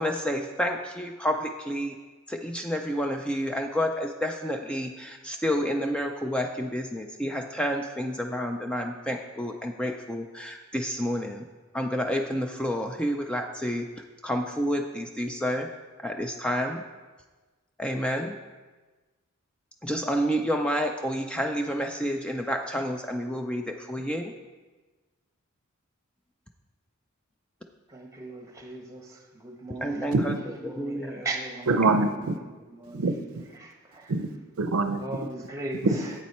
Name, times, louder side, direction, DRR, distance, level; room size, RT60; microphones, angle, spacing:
voice 1, 0.0-2.0 2.3-11.4 11.7-13.9 14.2-15.7 16.0-16.8 17.8-18.4 19.8-24.3 29.8-31.3, equal, 5° left, 3 dB, 0.4 m, -29 dB
voice 2, 27.9-30.1 30.6-31.7 32.7-33.1 33.6-34.1 35.0-36.1, right 2 dB, 15° right, 2 dB, 1.1 m, -38 dB
voice 3, 31.7-32.4 32.9-33.4 34.1-34.3 34.6-35.0 35.8-36.0, right 3 dB, 90° right, 9 dB, 0.6 m, -24 dB
8.0 x 7.3 x 4.3 m, 1.3 s
head